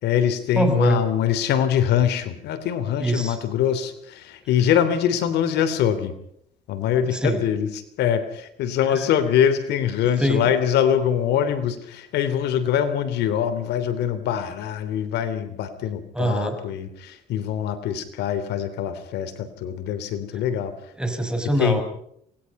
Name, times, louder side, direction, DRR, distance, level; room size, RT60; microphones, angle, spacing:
voice 1, 0.0-6.1 6.7-20.7 21.6-21.8, left 9 dB, 80° left, 11 dB, 3.1 m, -23 dB
voice 2, 0.6-1.0 3.0-3.4 7.1-7.4 10.2-10.5 16.1-16.6 21.0-21.8, right 1 dB, 5° right, 7 dB, 5.4 m, -23 dB
27.5 x 20.5 x 5.5 m, 0.70 s
cardioid pair, 110°, 17 cm